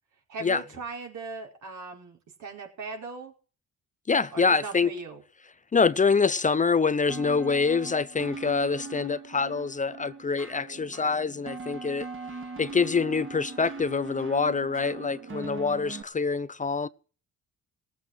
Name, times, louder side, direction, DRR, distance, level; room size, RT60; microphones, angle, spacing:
voice 1, 0.3-3.3 4.3-5.2, right 4 dB, 75° right, 5.1 m, -39 dB
voice 2, 4.1-4.9 5.7-12.1 12.6-16.9, left 5 dB, 25° left, 0.6 m, -25 dB
sound 1, 7.1-16.0, right 4 dB, 45° right, 2.6 m, -40 dB
18.5 x 8.0 x 7.6 m
cardioid pair, 90°, 30 cm